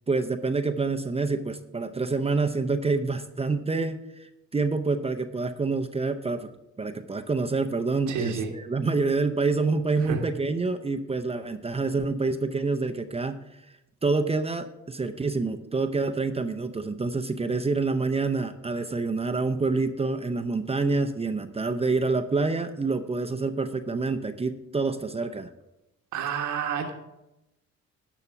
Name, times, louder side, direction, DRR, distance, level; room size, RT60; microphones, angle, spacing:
voice 1, 0.1-6.5 6.8-13.4 14.0-25.5, right 3 dB, 20° right, 7 dB, 0.6 m, -27 dB
voice 2, 8.1-8.5 10.1-10.2 26.1-26.9, right 7 dB, 80° right, 2 dB, 1.3 m, -29 dB
11.0 x 5.7 x 5.8 m, 0.93 s
cardioid pair, 90°, 30 cm